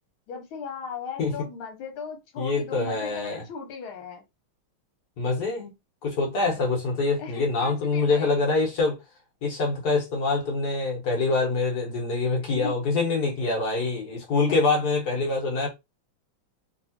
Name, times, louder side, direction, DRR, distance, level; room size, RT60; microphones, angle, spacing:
voice 1, 0.3-4.2 7.2-8.4 12.5-12.7 14.3-14.6, left 5 dB, 80° left, 1.9 m, -37 dB
voice 2, 2.4-3.4 5.2-5.7 6.0-9.0 9.4-15.7, left 3 dB, 55° left, 1.7 m, -25 dB
3.3 x 3.0 x 2.8 m
omnidirectional pair, 2.3 m